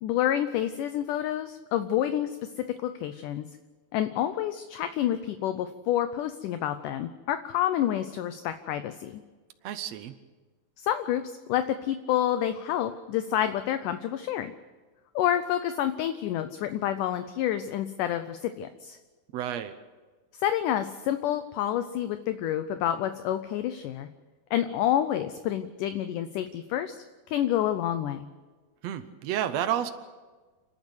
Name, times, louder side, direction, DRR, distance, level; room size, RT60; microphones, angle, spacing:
voice 1, 0.0-2.4 2.8-3.5 3.9-9.2 10.8-11.2 11.5-14.5 15.2-19.0 20.3-24.1 24.5-27.0 27.3-28.3, left 11 dB, 75° left, 10 dB, 2.0 m, -28 dB
voice 2, 9.6-10.1 19.3-19.7 28.8-29.9, right 10 dB, 85° right, 9 dB, 1.5 m, -30 dB
30.0 x 11.0 x 8.0 m, 1.3 s
omnidirectional pair, 4.3 m